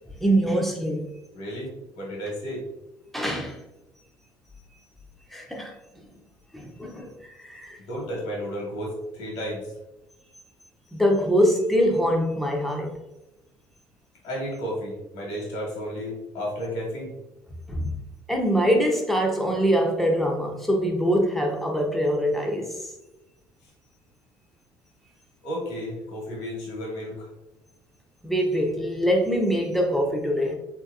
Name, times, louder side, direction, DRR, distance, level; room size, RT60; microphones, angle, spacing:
voice 1, 0.2-1.1 3.1-3.6 5.3-5.8 6.5-7.8 10.9-12.9 17.7-17.9 18.3-22.8 28.2-30.5, equal, ahead, 0.7 m, -23 dB
voice 2, 1.3-2.7 7.9-9.7 14.2-17.2 17.8-18.0 25.4-27.3, equal, 80° left, 1.1 m, -33 dB
3.1 x 2.7 x 2.4 m
supercardioid pair, 75°, 10 cm